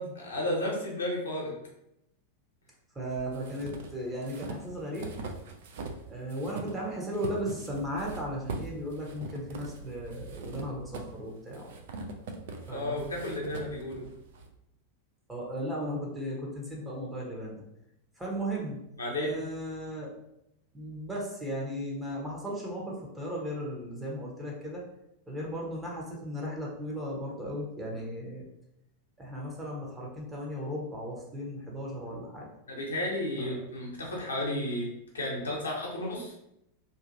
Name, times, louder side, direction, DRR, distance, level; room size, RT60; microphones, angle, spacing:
voice 1, 0.0-1.5 12.7-14.0 19.0-19.4 32.7-34.9 35.1-36.3, left 1 dB, 70° left, -2 dB, 0.8 m, -32 dB
voice 2, 2.9-5.1 6.1-11.7 12.7-13.1 15.3-17.6 18.2-18.8 19.2-20.2 20.7-24.8 25.3-28.5 29.2-32.5 33.4-33.6, equal, 10° right, -3 dB, 0.8 m, -36 dB
sound 1, 3.0-6.0 6.3-14.5, right 3 dB, 55° right, 0.4 m, -42 dB
2.6 x 2.5 x 2.6 m, 0.81 s
figure-of-eight pair, 90°, 0 cm